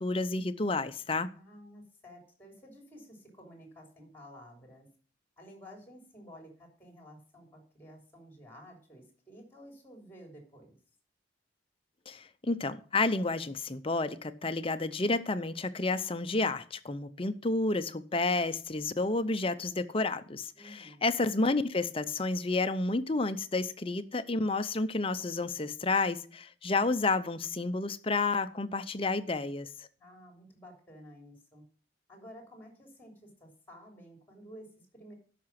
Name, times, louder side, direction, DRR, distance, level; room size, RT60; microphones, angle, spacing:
voice 1, 0.0-1.3 12.1-29.7, left 3 dB, 30° left, 0.6 m, -30 dB
voice 2, 1.3-4.9 5.4-10.7 20.5-21.0 30.0-31.6 32.1-35.2, equal, 10° left, 3.4 m, -52 dB
12.5 x 5.9 x 5.8 m
head